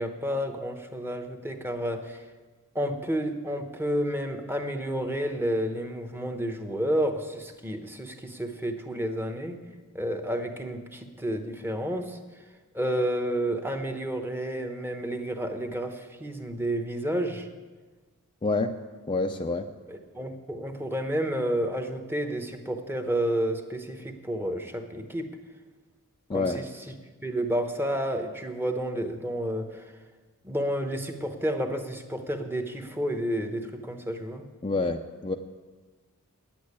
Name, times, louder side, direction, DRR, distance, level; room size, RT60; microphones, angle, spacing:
voice 1, 0.0-2.3 2.7-9.6 9.9-12.4 12.7-17.5 19.9-25.4 26.3-26.9 27.2-30.0 30.4-34.4, equal, 10° right, 6 dB, 1.0 m, -30 dB
voice 2, 18.4-18.7 19.1-19.7 26.3-26.6 34.6-35.4, left 3 dB, 25° left, 4 dB, 0.5 m, -27 dB
9.4 x 8.7 x 9.7 m, 1.3 s
head